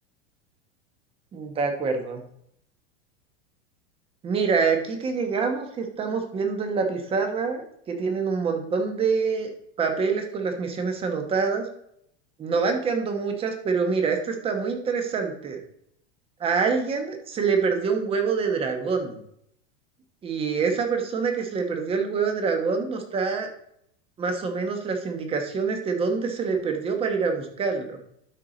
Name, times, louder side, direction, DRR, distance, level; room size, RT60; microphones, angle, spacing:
voice 1, 1.3-2.2 4.2-9.5 9.8-11.6 12.4-15.6 16.4-19.2 20.2-23.5 24.2-28.0, right 5 dB, 15° right, 5 dB, 1.0 m, -26 dB
12.0 x 4.7 x 3.9 m, 0.71 s
supercardioid pair, 165°, 32 cm